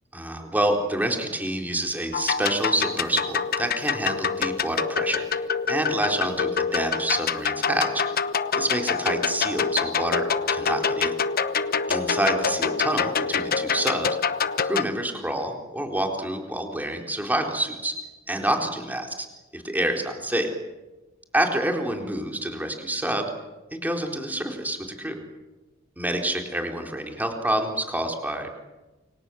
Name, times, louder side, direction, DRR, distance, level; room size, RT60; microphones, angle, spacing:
voice 1, 0.1-8.0 8.5-11.1 11.9-14.1 14.6-18.0 18.3-19.1 19.6-20.5 21.3-23.3 23.7-25.2 26.0-28.6, right 1 dB, 10° right, 2 dB, 3.9 m, -27 dB
sound 1, 2.1-14.8, left 6 dB, 50° left, 1.0 m, -26 dB
29.0 x 24.5 x 7.8 m, 1.1 s
head